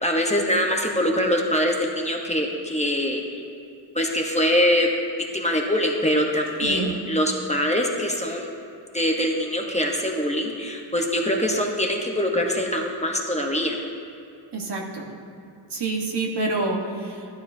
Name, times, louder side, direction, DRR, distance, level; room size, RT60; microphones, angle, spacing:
voice 1, 0.0-3.4 3.9-4.9 5.3-8.5 8.9-13.8, equal, 15° left, 0 dB, 1.0 m, -23 dB
voice 2, 6.6-6.9 14.5-15.1 15.7-17.2, right 3 dB, 70° right, 0 dB, 1.4 m, -27 dB
12.5 x 12.0 x 2.7 m, 2.6 s
wide cardioid pair, 105°, 43 cm